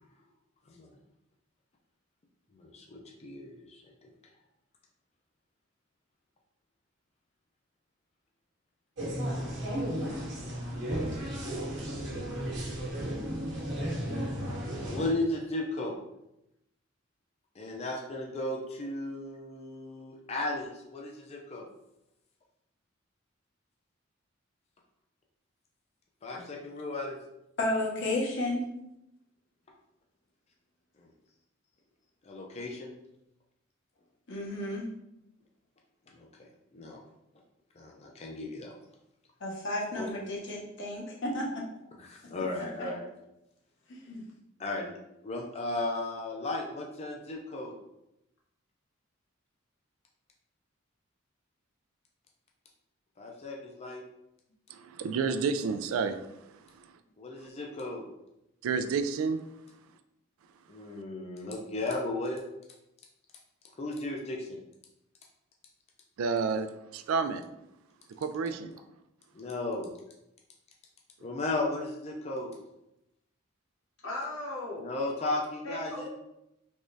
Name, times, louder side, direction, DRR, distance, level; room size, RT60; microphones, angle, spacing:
voice 1, 2.5-4.1 14.9-16.0 17.6-21.7 26.2-27.2 31.0-31.1 32.2-32.9 36.2-36.3 36.7-37.0 37.8-38.7 40.0-40.1 42.0-43.0 44.6-44.9 45.2-47.8 53.2-54.0 57.2-58.1 60.7-62.4 63.8-64.6 68.4-68.5 69.3-69.9 71.2-72.5 74.8-76.1, left 2 dB, 30° left, 0 dB, 0.4 m, -35 dB
sound 1, 9.0-15.1, equal, 60° right, 1.1 m, -34 dB
voice 2, 27.6-28.7 34.3-34.8 39.4-41.5 42.8-42.9 43.9-44.2, left 1 dB, 60° left, -1 dB, 0.8 m, -32 dB
voice 3, 54.7-56.2 56.8-56.9 58.6-59.4 66.2-67.5 68.2-68.7, right 5 dB, 90° right, 9 dB, 0.3 m, -30 dB
voice 4, 74.0-74.9 75.6-76.1, left 1 dB, 85° left, -4 dB, 1.2 m, -37 dB
3.5 x 3.1 x 2.6 m, 0.86 s
head